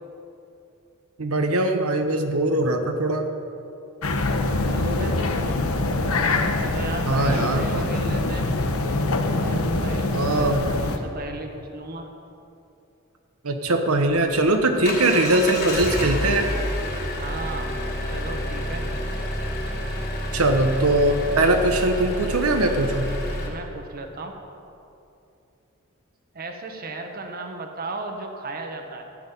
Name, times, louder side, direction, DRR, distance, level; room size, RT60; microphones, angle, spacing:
voice 1, 1.2-3.3 7.1-7.9 10.1-10.6 13.4-16.5 20.3-23.1, right 2 dB, 80° right, 4 dB, 1.1 m, -21 dB
sound 1, 4.0-11.0, left 2 dB, 85° left, 1.1 m, -24 dB
voice 2, 4.5-5.3 6.7-8.5 9.3-12.1 17.2-17.7 18.0-18.9 23.4-24.3 26.3-29.1, right 2 dB, 45° right, 4 dB, 1.2 m, -35 dB
Engine, 14.0-23.5, left 1 dB, 45° left, 3.2 m, -29 dB
14.5 x 6.4 x 9.8 m, 2.7 s
head